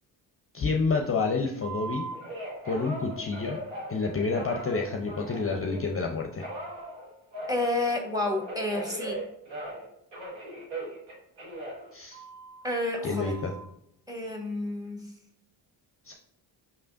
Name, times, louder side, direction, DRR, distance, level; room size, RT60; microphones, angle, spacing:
voice 1, 0.5-2.1 2.6-3.6 3.9-6.5 11.9-12.2 13.0-13.5 16.0-16.1, left 4 dB, 30° left, 2 dB, 0.6 m, -29 dB
Telephone, 1.6-5.9 6.4-9.9 10.1-12.6 13.1-13.6, right 1 dB, 85° right, 1.5 m, -39 dB
voice 2, 7.5-9.2 12.6-13.3 14.1-15.0, left 2 dB, 10° right, 2 dB, 1.3 m, -30 dB
5.5 x 3.3 x 2.5 m, 0.77 s
supercardioid pair, 60°, 45 cm